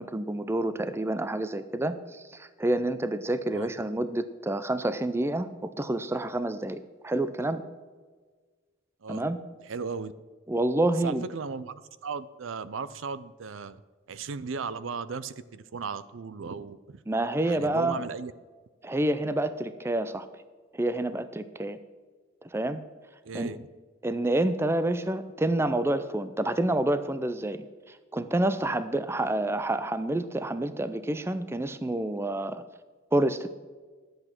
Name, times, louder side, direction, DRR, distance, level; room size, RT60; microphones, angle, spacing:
voice 1, 0.0-7.6 9.1-9.4 10.5-11.2 17.1-18.0 18.8-20.3 20.7-21.8 22.4-22.8 23.3-23.5 24.0-32.6 33.1-33.5, right 1 dB, 10° right, 12 dB, 0.4 m, -28 dB
voice 2, 9.6-10.1 11.0-13.8 14.1-17.0 17.4-18.3 23.2-23.7, right 5 dB, 70° right, 16 dB, 0.5 m, -36 dB
11.0 x 7.9 x 6.0 m, 1.4 s
head